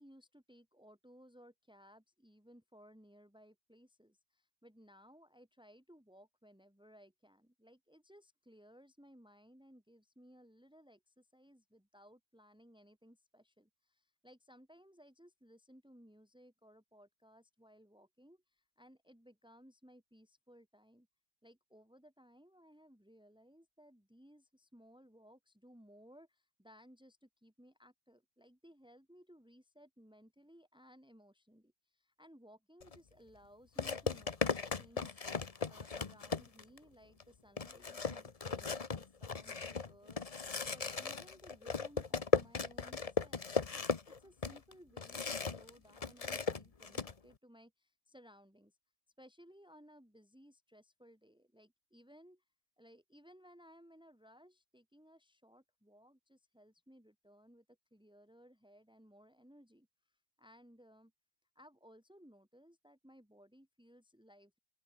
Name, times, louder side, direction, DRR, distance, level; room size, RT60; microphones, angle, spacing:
voice 1, 0.0-21.1 21.4-48.8 49.2-52.4 52.8-61.1 61.5-64.6, equal, 5° right, 4.2 m, -61 dB
sound 1, 32.8-33.0 33.8-36.8 37.2-37.3 37.6-45.7 46.0-47.1, left 5 dB, 30° left, 0.8 m, -36 dB
open air
omnidirectional pair, 1.7 m